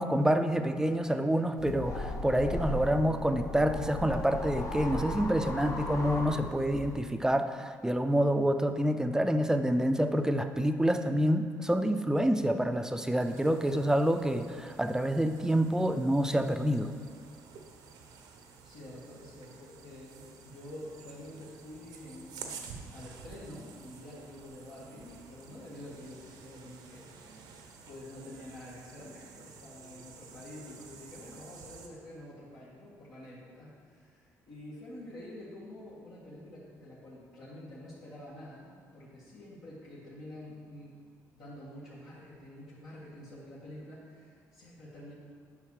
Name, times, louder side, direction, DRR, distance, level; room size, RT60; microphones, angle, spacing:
voice 1, 0.0-16.9, equal, 10° right, 7 dB, 0.6 m, -27 dB
sound 1, 1.6-7.0, left 2 dB, 45° left, 1.1 m, -37 dB
sound 2, 13.2-31.9, right 5 dB, 75° right, 0.9 m, -51 dB
voice 2, 18.6-27.4 27.9-41.0 41.3-45.1, left 1 dB, 70° left, -9 dB, 1.9 m, -48 dB
7.8 x 5.7 x 4.9 m, 2.2 s
supercardioid pair, 60°, 7 cm